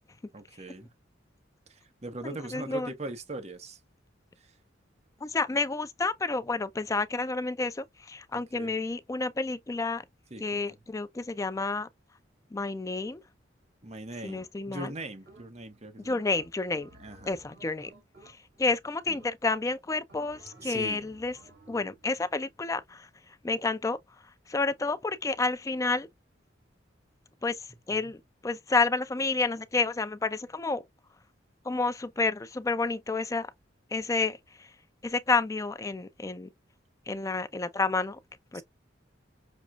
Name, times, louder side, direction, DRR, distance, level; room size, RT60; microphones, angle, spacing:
voice 1, 0.3-0.9 1.7-3.8 4.4-4.6 8.3-8.7 10.3-10.6 13.8-16.2 17.0-17.3 19.1-19.2 20.6-21.0 27.9-28.1 38.5-38.6, right 2 dB, 35° right, 1.0 m, -41 dB
voice 2, 2.2-2.9 5.2-10.0 10.4-11.9 12.5-13.2 14.2-14.9 16.0-16.9 17.2-17.9 18.3-21.3 21.7-23.1 23.4-24.0 24.5-26.1 27.4-30.8 31.6-33.5 33.9-34.7 35.0-36.5 37.1-38.2 38.5-38.6, left 3 dB, 15° left, 0.3 m, -30 dB
sound 1, 14.3-14.8 15.3-15.8 16.2-18.7 19.1-19.7 20.1-22.0, right 2 dB, 75° right, 2.2 m, -55 dB
6.1 x 2.3 x 2.4 m
head